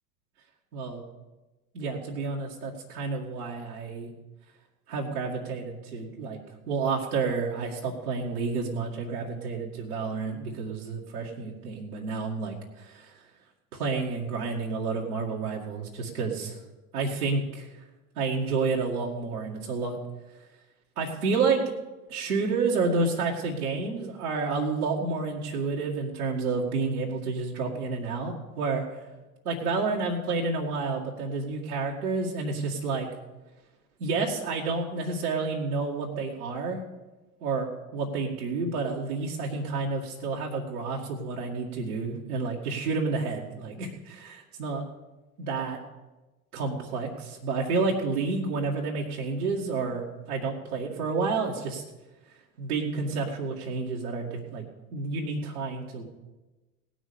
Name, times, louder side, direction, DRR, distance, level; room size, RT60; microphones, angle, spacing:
voice 1, 0.7-1.0 1.7-4.1 4.9-6.4 6.7-13.3 13.7-16.6 16.9-17.7 18.2-20.0 21.0-21.6 22.1-29.0 29.4-33.1 34.0-36.8 37.4-44.8 45.4-45.8 46.5-51.8 52.6-54.6 54.9-56.0, right 4 dB, 85° right, -5 dB, 2.0 m, -30 dB
17.5 x 6.2 x 8.5 m, 1.1 s
hypercardioid pair, 80°, 43 cm